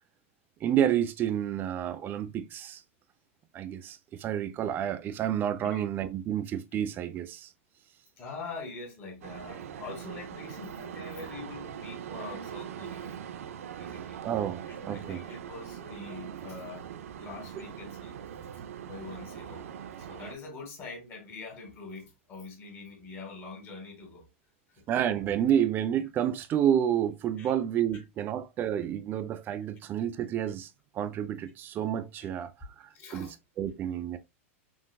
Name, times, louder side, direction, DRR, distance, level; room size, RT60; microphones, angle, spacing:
voice 1, 0.6-2.8 3.5-7.5 14.2-15.2 24.9-30.7 30.9-32.5 32.8-33.3 33.6-34.2, right 10 dB, 25° right, 0.4 m, -29 dB
voice 2, 8.2-13.1 13.8-14.2 14.7-16.9 17.2-18.1 18.5-19.6 20.0-24.3 24.7-24.8 27.4-27.5 27.9-28.0 32.2-32.3 32.9-33.3, left 3 dB, 30° left, 1.3 m, -44 dB
sound 1, 9.2-20.3, right 9 dB, 85° right, 0.4 m, -42 dB
3.9 x 2.5 x 2.3 m
hypercardioid pair, 135°, 7 cm